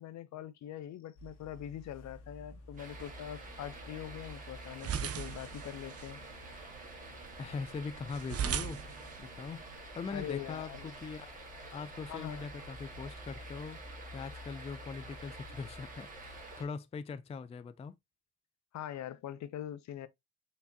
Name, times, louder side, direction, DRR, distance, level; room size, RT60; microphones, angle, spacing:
voice 1, 0.0-6.2 10.1-11.0 12.1-12.5 18.7-20.1, left 11 dB, 65° left, 0.6 m, -43 dB
sound 1, 1.2-16.4, left 1 dB, 90° left, 1.7 m, -53 dB
sound 2, 2.8-16.6, right 2 dB, 25° right, 1.7 m, -49 dB
sound 3, 2.8-9.8, right 8 dB, 55° right, 0.6 m, -41 dB
voice 2, 7.4-8.8 9.2-9.6 9.9-11.3 11.7-13.8 14.1-17.9, left 5 dB, 20° left, 0.3 m, -41 dB
4.7 x 3.3 x 2.7 m
cardioid pair, 90°, 30 cm